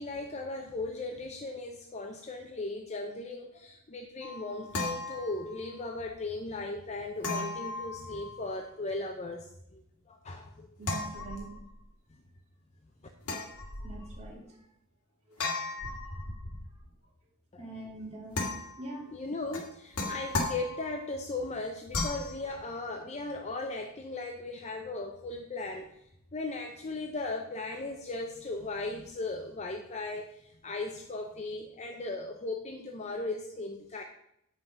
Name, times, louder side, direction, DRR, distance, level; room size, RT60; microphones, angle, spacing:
voice 1, 0.0-9.8 10.1-10.7 12.1-12.2 17.5-17.7 19.1-34.0, left 2 dB, 30° left, 3 dB, 0.6 m, -37 dB
sound 1, 4.2-5.8 7.2-8.6 10.8-11.9 13.2-14.3 15.4-16.8 18.3-19.0 19.5-21.1 21.9-22.4, left 2 dB, 85° left, 1.8 m, -36 dB
voice 2, 10.8-11.6 13.8-14.4 15.3-15.4 15.9-16.0 17.6-18.4 18.7-19.1, right 2 dB, 30° right, -4 dB, 2.7 m, -43 dB
7.8 x 5.7 x 5.7 m, 0.76 s
head